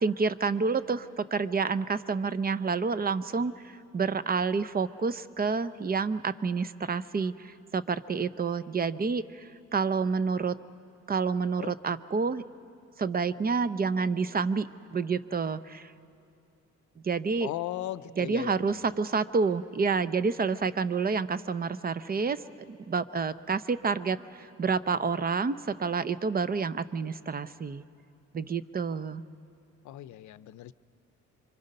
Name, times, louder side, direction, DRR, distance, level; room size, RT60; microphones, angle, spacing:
voice 1, 0.0-10.6 11.1-12.4 13.0-15.9 17.0-17.5 18.2-27.8 28.3-29.2, right 5 dB, 30° right, 15 dB, 0.7 m, -29 dB
voice 2, 17.4-18.8 29.8-30.7, left 14 dB, 70° left, 16 dB, 0.6 m, -37 dB
26.5 x 24.0 x 5.4 m, 2.6 s
cardioid pair, 90°, 30 cm